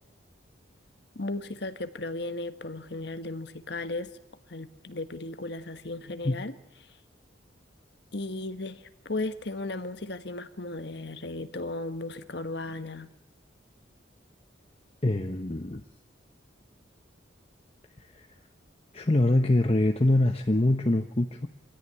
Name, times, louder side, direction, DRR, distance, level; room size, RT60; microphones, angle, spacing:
voice 1, 1.1-4.1 4.5-6.5 8.1-13.1, left 2 dB, 60° left, 10 dB, 1.3 m, -35 dB
voice 2, 15.0-15.8 18.0-18.3 18.9-21.5, left 1 dB, 30° left, 6 dB, 0.9 m, -24 dB
26.0 x 16.5 x 9.7 m, 0.91 s
head